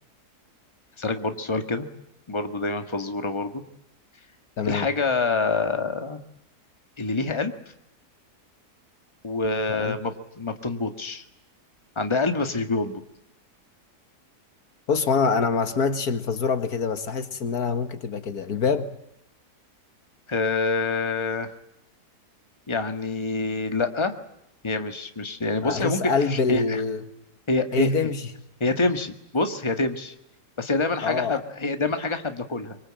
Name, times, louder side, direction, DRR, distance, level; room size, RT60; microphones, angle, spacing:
voice 1, 1.0-1.9 2.3-3.6 4.6-6.2 7.0-7.5 9.2-11.2 12.0-13.0 20.3-21.5 22.7-24.1 24.6-26.8 27.5-27.9 28.6-30.1 30.6-32.8, left 3 dB, 15° left, 7 dB, 1.8 m, -26 dB
voice 2, 14.9-18.9 25.6-27.0 27.7-28.2 31.0-31.4, left 5 dB, 70° left, 10 dB, 2.0 m, -25 dB
24.5 x 23.5 x 8.9 m, 0.82 s
omnidirectional pair, 1.7 m